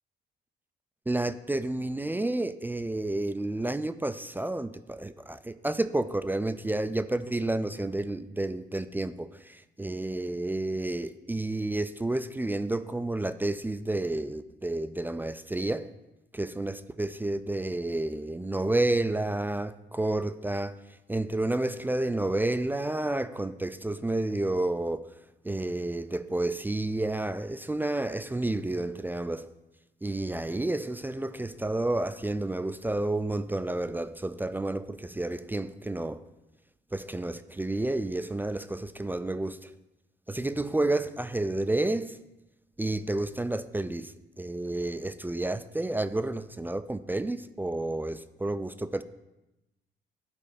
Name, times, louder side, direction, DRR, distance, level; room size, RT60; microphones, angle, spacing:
voice 1, 1.1-15.9 16.3-20.8 21.1-25.1 25.4-29.5 30.0-36.2 36.9-39.7 40.3-42.2 42.8-49.0, right 2 dB, 10° right, 0.3 m, -30 dB
11.0 x 4.3 x 5.0 m
cardioid pair, 90°, 20 cm